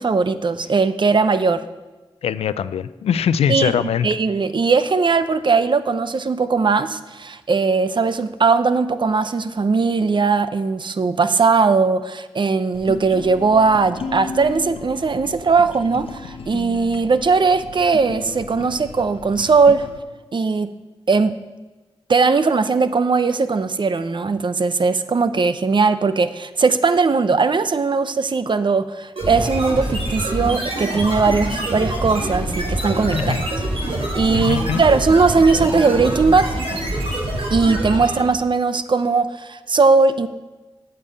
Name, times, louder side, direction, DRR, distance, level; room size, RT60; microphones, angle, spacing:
voice 1, 0.0-1.6 3.5-19.9 20.3-20.7 21.1-21.3 22.1-33.4 34.1-36.5 37.5-40.3, right 4 dB, 50° right, 12 dB, 0.7 m, -19 dB
voice 2, 2.2-4.1 33.1-33.4 34.3-34.8, left 8 dB, 90° left, 15 dB, 0.4 m, -22 dB
sound 1, 12.7-20.0, left 4 dB, 70° left, 0.9 m, -35 dB
sound 2, 29.2-38.3, right 1 dB, 70° right, 3.6 m, -25 dB
8.7 x 6.8 x 8.0 m, 1.2 s
cardioid pair, 45°, 10 cm